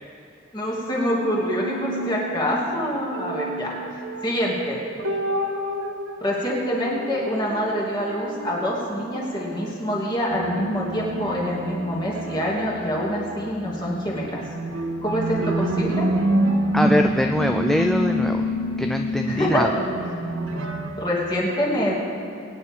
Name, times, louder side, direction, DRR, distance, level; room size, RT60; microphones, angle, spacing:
voice 1, 0.5-3.7 4.2-4.8 6.2-14.4 15.0-16.1 19.3-19.6 20.9-22.0, equal, 20° left, -4 dB, 2.6 m, -25 dB
sound 1, 1.0-4.4 4.6-9.5 9.9-10.0 10.3-20.9, equal, 80° right, 1.5 m, -28 dB
voice 2, 16.7-18.5 18.8-19.7, equal, ahead, 4 dB, 0.3 m, -23 dB
23.0 x 9.9 x 3.8 m, 2.7 s
head